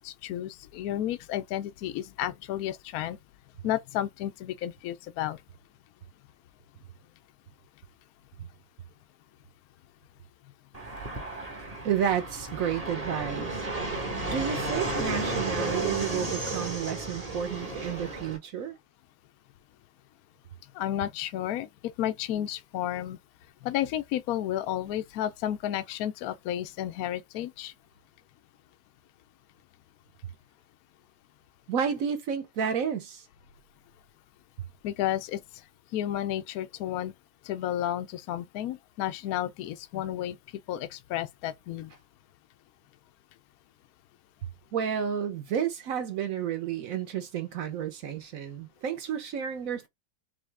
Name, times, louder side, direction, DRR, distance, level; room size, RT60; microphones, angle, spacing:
voice 1, 0.0-3.2 3.6-5.4 20.7-21.7 22.0-23.2 23.6-27.7 34.8-35.4 35.9-37.1 37.4-40.4 40.7-41.9, left 12 dB, 75° left, 0.8 m, -32 dB
Fixed-wing aircraft airplane, 10.7-18.4, right 2 dB, 25° right, 0.9 m, -33 dB
voice 2, 11.8-13.7 14.2-18.7 31.7-33.3 44.7-49.9, right 8 dB, 60° right, 0.9 m, -31 dB
3.9 x 3.2 x 3.3 m
omnidirectional pair, 2.1 m